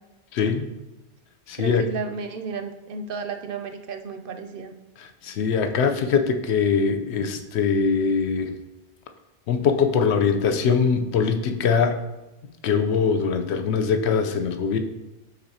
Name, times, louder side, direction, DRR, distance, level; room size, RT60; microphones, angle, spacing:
voice 1, 0.3-0.7 1.5-1.8 5.0-8.5 9.5-12.0 12.6-14.8, left 6 dB, 75° left, 7 dB, 0.9 m, -22 dB
voice 2, 1.5-4.7, right 5 dB, 60° right, 7 dB, 0.6 m, -33 dB
12.0 x 4.1 x 2.8 m, 1.0 s
omnidirectional pair, 1.2 m